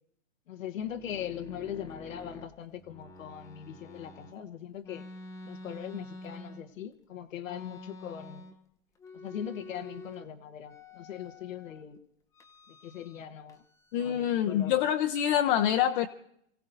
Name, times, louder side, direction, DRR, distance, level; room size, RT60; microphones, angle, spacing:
voice 1, 0.5-5.0 5.4-8.5 9.1-12.0 12.7-13.6 13.9-14.9, left 9 dB, 90° left, 7 dB, 1.2 m, -40 dB
sound 1, 0.8-4.4 4.8-6.9 7.4-8.7 9.0-10.3 10.6-11.8 12.3-13.2 13.5-14.7, left 2 dB, 10° left, 0.7 m, -48 dB
voice 2, 13.9-16.1, left 10 dB, 45° left, 5 dB, 0.7 m, -26 dB
29.5 x 16.5 x 2.6 m, 0.72 s
hypercardioid pair, 145°, 38 cm